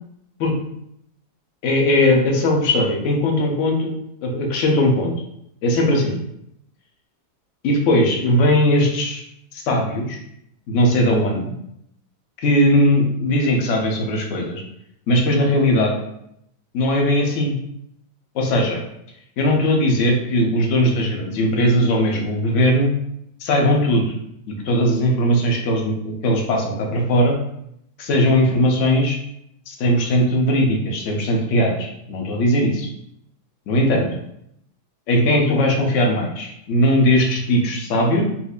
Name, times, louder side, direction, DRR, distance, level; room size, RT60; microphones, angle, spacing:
voice 1, 1.6-5.1 5.6-6.2 7.6-9.2 9.5-10.2 10.7-11.5 12.4-14.6 15.1-16.0 16.7-17.6 18.3-18.8 19.4-22.9 23.4-24.1 24.5-27.4 28.0-29.2 29.7-32.9 33.7-34.1 35.1-38.2, left 1 dB, 60° left, 0 dB, 0.9 m, -19 dB
4.3 x 2.6 x 2.3 m, 0.75 s
omnidirectional pair, 1.8 m